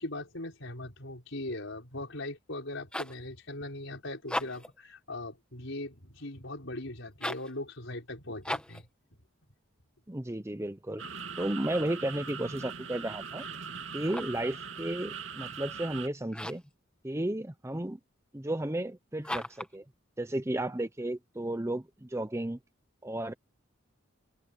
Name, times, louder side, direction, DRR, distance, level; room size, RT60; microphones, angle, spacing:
voice 1, 0.0-8.9, left 2 dB, 60° left, 5.5 m, -40 dB
sound 1, 2.6-3.3 4.2-4.8 7.1-7.6 8.4-8.9 13.9-14.5 16.3-16.7 19.2-19.8, left 1 dB, 5° left, 1.5 m, -37 dB
voice 2, 10.1-11.0 11.4-13.5 13.9-16.6 17.0-18.0 18.3-19.8 20.2-22.6 23.0-23.3, right 1 dB, 15° right, 0.7 m, -33 dB
sound 2, 11.0-16.1, right 6 dB, 65° right, 2.8 m, -41 dB
open air
head